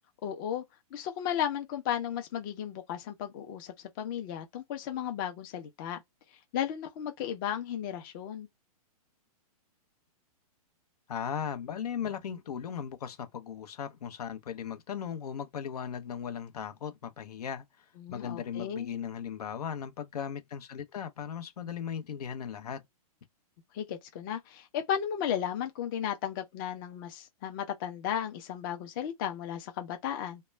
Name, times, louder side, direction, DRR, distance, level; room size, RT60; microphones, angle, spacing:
voice 1, 0.2-0.6 0.9-6.0 6.5-8.5 18.0-18.9 23.7-30.4, left 9 dB, 35° left, 0.5 m, -34 dB
voice 2, 11.1-22.8, left 8 dB, 85° left, 0.7 m, -37 dB
2.2 x 2.1 x 3.1 m
hypercardioid pair, 150°, 19 cm